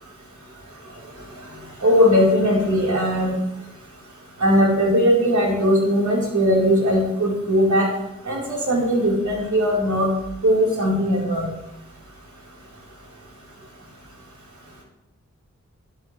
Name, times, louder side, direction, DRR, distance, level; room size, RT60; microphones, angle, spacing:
voice 1, 1.8-3.3 4.4-7.9 8.3-10.1 10.4-11.5, equal, 70° right, -4 dB, 4.2 m, -19 dB
11.5 x 11.0 x 3.3 m, 0.89 s
cardioid pair, 50°, 30 cm